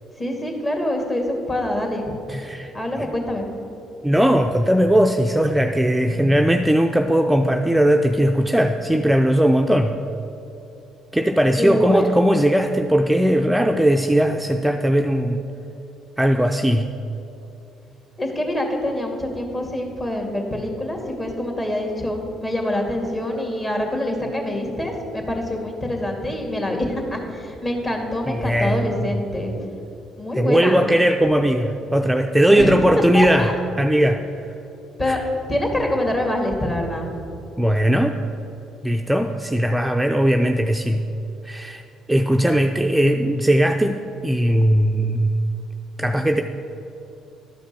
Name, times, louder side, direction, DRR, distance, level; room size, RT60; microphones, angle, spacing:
voice 1, 0.2-2.2 2.7-3.5 11.6-12.1 18.2-29.5 30.2-30.9 32.6-32.7 33.1-33.5 35.0-35.2 35.5-37.2, left 1 dB, 30° left, 2 dB, 2.2 m, -25 dB
voice 2, 2.3-3.1 4.0-10.0 11.1-15.4 16.2-16.9 28.3-29.2 30.3-33.5 33.8-34.2 35.1-35.2 37.6-38.2 38.8-41.1 41.4-45.3 46.0-46.4, equal, 5° right, 4 dB, 0.5 m, -19 dB
11.5 x 5.1 x 6.8 m, 2.9 s
supercardioid pair, 65°, 0 cm